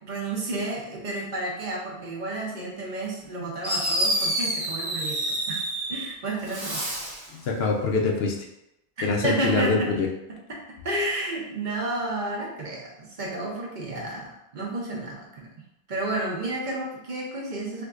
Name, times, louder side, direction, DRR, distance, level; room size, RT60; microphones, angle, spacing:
voice 1, 0.0-6.8 9.2-10.0 10.3-15.5 15.9-17.8, right 1 dB, 55° right, -2 dB, 0.8 m, -31 dB
Fireworks, 3.2-3.3 3.6-6.1 6.4-7.3, right 1 dB, 25° right, 0.9 m, -28 dB
voice 2, 7.3-8.3 9.0-10.1, left 3 dB, 80° left, 2 dB, 0.8 m, -24 dB
4.6 x 2.2 x 2.4 m, 0.85 s
omnidirectional pair, 1.0 m